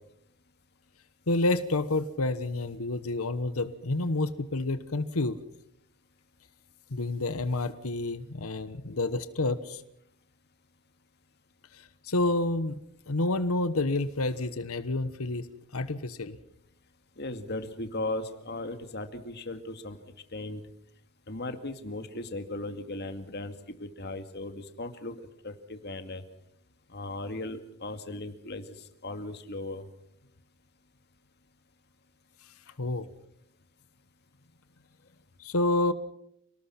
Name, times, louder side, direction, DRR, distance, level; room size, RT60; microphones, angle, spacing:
voice 1, 1.3-5.4 6.9-9.8 11.7-12.8 13.1-16.4 32.8-33.1 35.4-35.9, left 2 dB, 80° left, 12 dB, 1.3 m, -29 dB
voice 2, 17.2-20.0 20.3-20.6 21.3-26.2 26.9-28.7 29.0-29.8, left 2 dB, 50° left, 8 dB, 2.3 m, -37 dB
28.5 x 19.0 x 5.9 m, 0.75 s
head